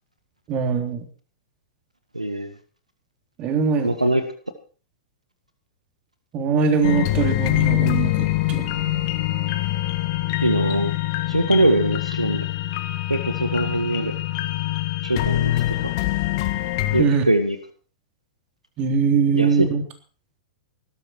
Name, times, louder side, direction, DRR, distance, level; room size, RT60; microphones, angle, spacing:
voice 1, 0.5-1.0 3.4-4.1 6.3-9.0 17.0-17.2 18.8-19.8, right 5 dB, 30° right, 6 dB, 3.6 m, -22 dB
voice 2, 2.1-2.5 3.8-4.2 10.4-10.9 11.3-12.4 13.1-14.1 15.0-15.9 16.9-17.6 19.3-19.7, right 1 dB, 90° right, 9 dB, 1.7 m, -22 dB
sound 1, 6.8-17.0, left 17 dB, 45° left, 1.7 m, -24 dB
18.5 x 13.0 x 4.6 m, 0.39 s
figure-of-eight pair, 100°, 3 cm